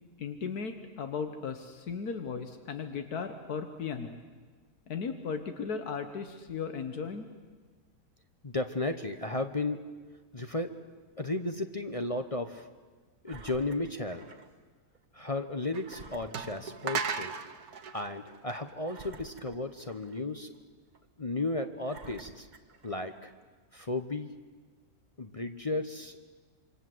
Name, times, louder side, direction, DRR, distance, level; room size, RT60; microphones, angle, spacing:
voice 1, 0.2-4.2 4.9-7.3, left 5 dB, 80° left, 7 dB, 1.8 m, -36 dB
voice 2, 8.4-9.9 10.3-10.7 11.2-12.7 13.2-14.3 15.1-17.3 17.9-20.5 21.2-22.5 22.8-23.3 23.7-24.3 25.2-26.2, left 2 dB, 30° left, 8 dB, 0.8 m, -34 dB
Engine, 13.3-14.5 14.9-15.0 15.8-17.2 17.6-17.7 18.8-20.3 20.9-21.0 21.8-23.3 24.0-24.1, right 3 dB, 30° right, 1.2 m, -51 dB
sound 1, 15.7-15.8 16.3-19.2, right 6 dB, 80° right, 1.6 m, -36 dB
27.0 x 24.5 x 7.8 m, 1.4 s
omnidirectional pair, 1.6 m